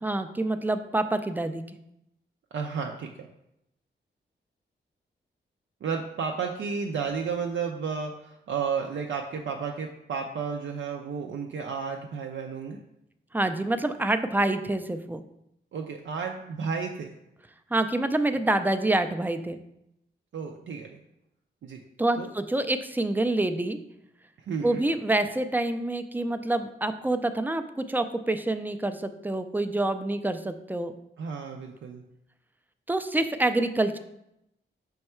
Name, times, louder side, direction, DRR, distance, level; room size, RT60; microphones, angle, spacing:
voice 1, 0.0-1.6 13.3-15.2 17.7-19.6 22.0-23.8 24.6-30.9 32.9-34.0, right 2 dB, 10° right, 9 dB, 0.4 m, -27 dB
voice 2, 2.5-3.3 5.8-12.8 15.7-17.2 20.3-21.0 21.6-21.8 22.2-22.3 24.4-24.9 31.2-32.0, right 6 dB, 75° right, 2 dB, 0.4 m, -32 dB
5.5 x 2.3 x 4.3 m, 0.83 s
cardioid pair, 55°, 20 cm